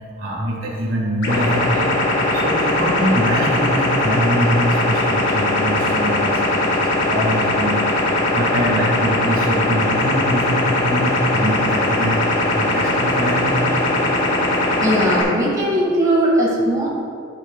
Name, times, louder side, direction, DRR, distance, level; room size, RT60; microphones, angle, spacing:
voice 1, 0.2-1.9 2.2-7.8 8.1-14.0, equal, 70° right, -4 dB, 1.8 m, -23 dB
sound 1, 1.2-15.2, left 2 dB, 60° left, 1.7 m, -20 dB
voice 2, 14.8-16.9, right 1 dB, 15° right, -6 dB, 1.9 m, -19 dB
13.0 x 6.3 x 2.4 m, 2.4 s
head